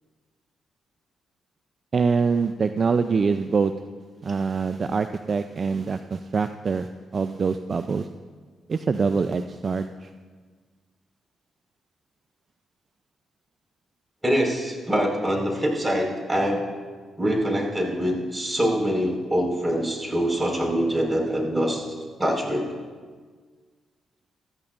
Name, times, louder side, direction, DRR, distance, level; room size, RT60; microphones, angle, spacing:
voice 1, 1.9-3.7 4.2-8.1 8.7-10.1, right 5 dB, 50° right, 10 dB, 0.5 m, -24 dB
voice 2, 14.2-16.6 17.2-21.8 22.2-22.7, equal, 15° right, -1 dB, 5.0 m, -24 dB
20.5 x 14.0 x 2.6 m, 1.5 s
hypercardioid pair, 45°, 0 cm